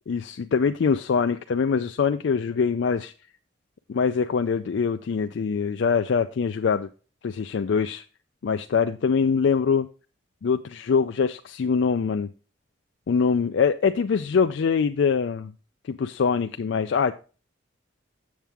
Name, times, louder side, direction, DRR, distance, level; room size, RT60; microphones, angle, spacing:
voice 1, 0.1-3.1 3.9-6.9 7.2-8.0 8.4-9.9 10.4-12.3 13.1-15.5 15.9-17.1, left 5 dB, 60° left, 7 dB, 0.4 m, -23 dB
7.3 x 7.2 x 3.4 m, 0.35 s
head